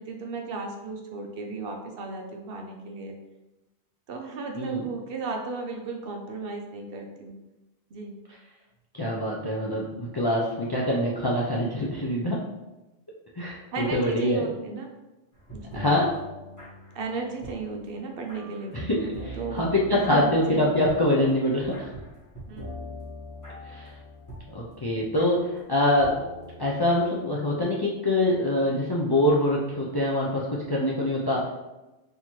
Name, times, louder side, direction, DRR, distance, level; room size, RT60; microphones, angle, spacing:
voice 1, 0.0-3.2 4.1-7.4 7.9-8.2 13.7-14.9 15.5-16.0 16.9-18.9 19.4-20.6 22.5-22.6, right 4 dB, 65° right, 3 dB, 0.7 m, -35 dB
voice 2, 4.6-4.9 8.9-12.5 13.4-14.5 15.7-16.1 18.7-21.9 23.6-23.9 24.5-26.2 26.6-31.5, left 1 dB, 35° left, -4 dB, 0.4 m, -25 dB
sound 1, 15.3-27.0, equal, 15° left, 1.2 m, -43 dB
4.3 x 2.8 x 3.0 m, 1.0 s
omnidirectional pair, 1.1 m